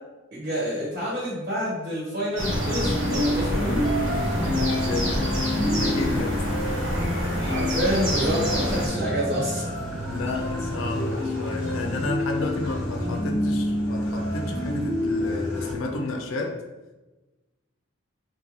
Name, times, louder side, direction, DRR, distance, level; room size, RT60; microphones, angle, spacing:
voice 1, 0.3-3.9 6.7-6.9 7.3-9.6, equal, 45° right, -7 dB, 1.2 m, -28 dB
sound 1, 2.4-8.9, equal, 65° right, 1.0 m, -28 dB
sound 2, 2.5-15.7, left 1 dB, 25° left, 1.2 m, -27 dB
voice 2, 4.5-6.5 9.9-16.6, left 2 dB, 80° left, 2 dB, 0.4 m, -32 dB
3.0 x 2.2 x 3.8 m, 1.1 s
head